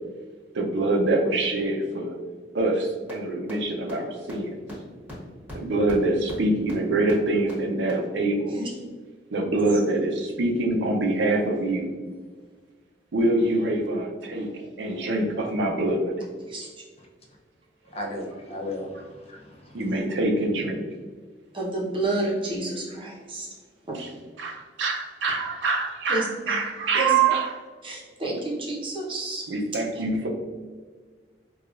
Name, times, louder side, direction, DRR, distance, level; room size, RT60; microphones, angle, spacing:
voice 1, 0.5-2.1 2.5-4.5 5.5-8.5 9.3-11.9 13.1-16.1 19.7-20.8 24.0-24.1 24.4-27.5 29.5-30.3, right 2 dB, 85° right, 2 dB, 0.5 m, -25 dB
sound 1, 3.1-3.2 3.5-3.6 3.9-4.0 4.3-4.4 4.7-4.8 5.1-5.2 5.5-5.6 5.9-6.0 6.3-6.4 6.7-6.8 7.1-7.2 7.5-7.6 7.9-8.0, left 1 dB, 10° right, 1.2 m, -39 dB
voice 2, 17.8-19.9, left 1 dB, 35° left, -1 dB, 0.5 m, -36 dB
voice 3, 21.5-23.5 26.1-26.6 26.9-27.1 27.8-29.5 29.9-30.0, right 2 dB, 30° right, -3 dB, 0.8 m, -30 dB
4.7 x 2.3 x 2.4 m, 1.5 s
head